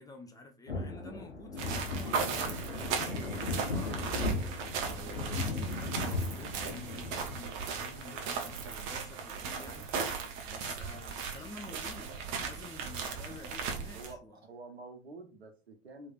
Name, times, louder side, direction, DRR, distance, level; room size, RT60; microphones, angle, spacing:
voice 1, 0.0-14.4, left 3 dB, 10° left, 0.4 m, -50 dB
sound 1, 0.7-7.4, left 2 dB, 90° left, 0.5 m, -36 dB
sound 2, 1.6-14.1, right 5 dB, 40° right, 0.7 m, -37 dB
voice 2, 13.9-16.1, right 3 dB, 80° right, 0.8 m, -48 dB
3.2 x 2.9 x 2.4 m
figure-of-eight pair, 80°, 31 cm